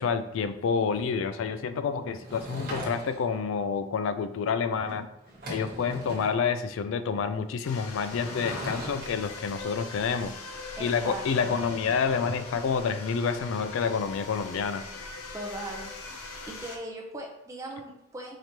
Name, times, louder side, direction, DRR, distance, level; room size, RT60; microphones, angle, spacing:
voice 1, 0.0-5.1 5.5-10.3 10.8-14.8, left 5 dB, 65° left, 12 dB, 0.3 m, -28 dB
Sliding door / Wood, 2.2-3.4 4.9-5.0 5.2-6.4 8.1-9.1, right 1 dB, 45° right, 1.3 m, -39 dB
sound 1, 7.6-16.8, left 3 dB, 85° left, 0.7 m, -41 dB
voice 2, 10.8-11.6 15.3-15.9 16.5-18.4, right 1 dB, 15° right, -1 dB, 0.6 m, -39 dB
4.8 x 2.9 x 2.9 m, 0.84 s
head